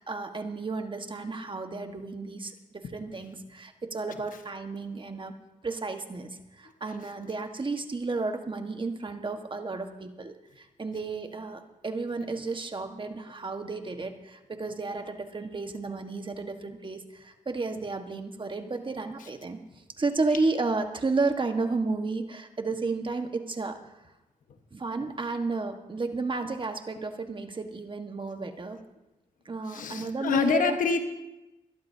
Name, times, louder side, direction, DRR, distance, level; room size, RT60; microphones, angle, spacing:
voice 1, 0.0-5.3 5.6-19.6 20.0-23.8 24.7-28.8 29.4-30.8, right 3 dB, 40° right, 6 dB, 1.4 m, -32 dB
voice 2, 29.7-31.0, left 6 dB, 80° left, 6 dB, 1.3 m, -26 dB
23.5 x 12.5 x 2.8 m, 0.99 s
cardioid pair, 60°, 13 cm